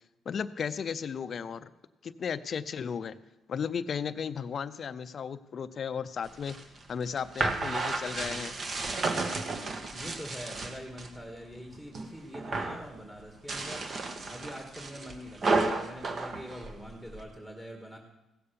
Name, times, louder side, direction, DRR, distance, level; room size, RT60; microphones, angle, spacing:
voice 1, 0.3-1.7 2.0-3.2 3.5-6.6 6.9-8.5, left 6 dB, 50° left, 13 dB, 0.5 m, -35 dB
sound 1, 6.3-11.1 11.5-12.1 12.3-12.9 13.3-17.2, right 3 dB, 45° right, 1.3 m, -32 dB
voice 2, 9.9-18.0, equal, 10° right, 2 dB, 1.8 m, -44 dB
16.0 x 6.9 x 6.8 m, 0.96 s
cardioid pair, 90°, 0 cm